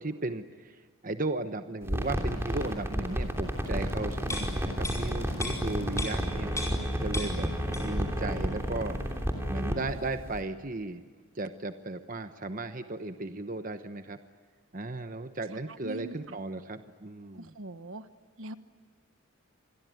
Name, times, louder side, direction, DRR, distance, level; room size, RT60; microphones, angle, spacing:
voice 1, 0.0-9.0 9.5-11.0 11.3-14.2 14.7-17.5, right 2 dB, 35° right, 9 dB, 1.0 m, -36 dB
sound 1, 1.8-10.4, equal, 10° right, 3.1 m, -31 dB
sound 2, 4.3-6.9 7.1-8.1 8.4-8.6, left 2 dB, 15° left, 4.9 m, -38 dB
voice 2, 15.8-16.4 17.3-18.0 18.4-18.5, right 2 dB, 65° right, 11 dB, 1.2 m, -41 dB
27.5 x 21.5 x 9.4 m, 1.5 s
head